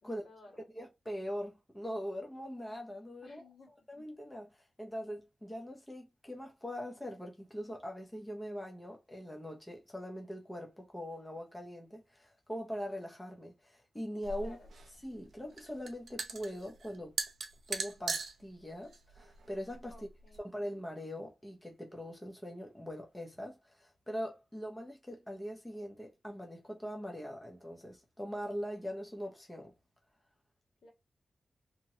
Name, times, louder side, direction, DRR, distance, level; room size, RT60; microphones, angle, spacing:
voice 1, 0.0-0.7 3.2-3.7 14.4-14.7 19.9-20.5 30.8-30.9, left 2 dB, 75° left, 1.7 m, -57 dB
voice 2, 0.7-3.4 3.9-14.6 15.0-17.1 17.7-19.9 20.4-29.7, equal, 10° left, 0.6 m, -42 dB
sound 1, 14.2-20.4, right 4 dB, 85° right, 0.6 m, -41 dB
2.9 x 2.8 x 2.7 m
wide cardioid pair, 125°, 0 cm